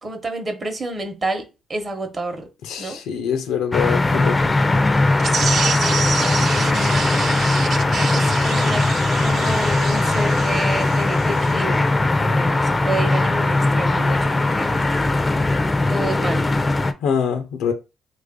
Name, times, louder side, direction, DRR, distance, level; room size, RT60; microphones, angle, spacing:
voice 1, 0.0-2.5 2.8-3.0 5.5-7.3 8.0-14.8 15.9-16.5, right 2 dB, 35° right, 0.9 m, -30 dB
voice 2, 2.6-4.6 17.0-17.7, left 7 dB, 85° left, 0.4 m, -24 dB
sound 1, 3.7-16.9, left 2 dB, 20° left, 0.4 m, -19 dB
sound 2, 5.2-11.6, right 6 dB, 55° right, 0.3 m, -28 dB
3.2 x 2.4 x 3.6 m
cardioid pair, 90°, 0 cm